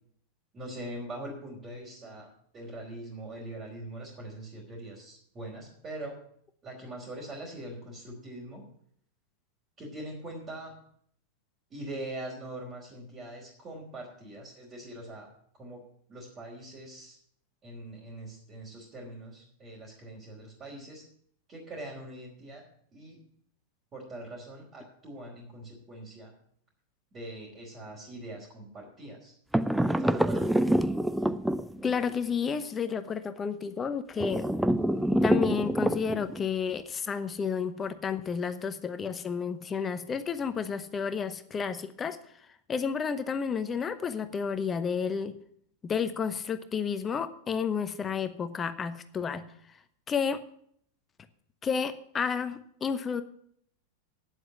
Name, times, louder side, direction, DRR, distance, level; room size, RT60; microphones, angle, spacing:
voice 1, 0.5-2.3 2.5-6.1 6.6-8.6 9.8-10.7 11.7-15.3 15.6-15.8 16.1-17.2 17.6-21.0 21.5-22.6 22.9-23.2 23.9-26.3 27.1-29.3 30.0-30.5, right 1 dB, 25° right, -5 dB, 3.4 m, -42 dB
sound 1, 29.5-32.1 34.2-36.5, right 1 dB, 5° right, 0.5 m, -26 dB
voice 2, 31.8-34.5 35.2-42.2 42.7-45.4 45.8-49.5 50.1-50.4 51.6-53.2, left 6 dB, 20° left, 11 dB, 0.9 m, -31 dB
9.3 x 7.8 x 7.8 m, 0.66 s
figure-of-eight pair, 90°, 0 cm